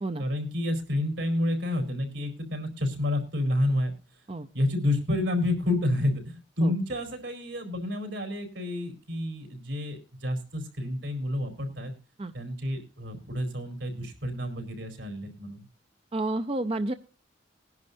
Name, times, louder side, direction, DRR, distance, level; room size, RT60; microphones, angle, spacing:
voice 1, 0.2-3.9 4.5-11.9 12.3-15.7, left 1 dB, 75° right, 5 dB, 4.5 m, -29 dB
voice 2, 16.1-16.9, right 2 dB, 30° right, 10 dB, 0.5 m, -30 dB
21.0 x 10.5 x 2.7 m, 0.32 s
head